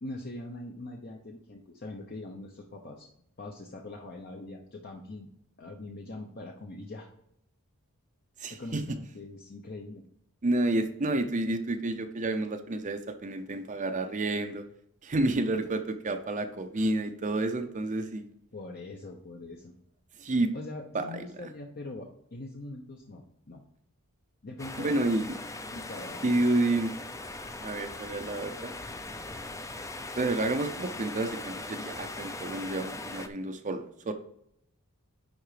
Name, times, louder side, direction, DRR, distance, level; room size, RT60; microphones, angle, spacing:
voice 1, 0.0-3.1 3.4-5.3 5.6-7.1 8.5-10.0 18.5-19.7 20.5-23.6 24.4-25.0 25.7-26.4, left 2 dB, 45° left, 2 dB, 0.8 m, -42 dB
voice 2, 8.4-8.8 10.4-14.6 15.0-18.3 20.2-20.5 20.9-21.5 24.8-25.3 26.2-26.9 27.6-28.7 30.1-34.1, right 2 dB, 35° right, 7 dB, 0.6 m, -30 dB
sound 1, 24.6-33.3, left 2 dB, 15° left, 0.5 m, -40 dB
10.5 x 3.8 x 4.9 m, 0.72 s
head